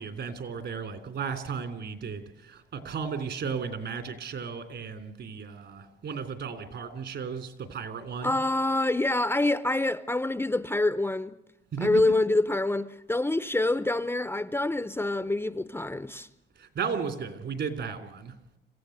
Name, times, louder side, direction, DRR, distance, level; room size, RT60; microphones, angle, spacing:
voice 1, 0.0-8.4 11.7-12.0 16.6-18.3, right 6 dB, 60° right, 3.3 m, -35 dB
voice 2, 8.2-11.4 11.8-16.3, left 2 dB, 10° left, 0.7 m, -26 dB
26.0 x 15.5 x 8.0 m
cardioid pair, 90°, 20 cm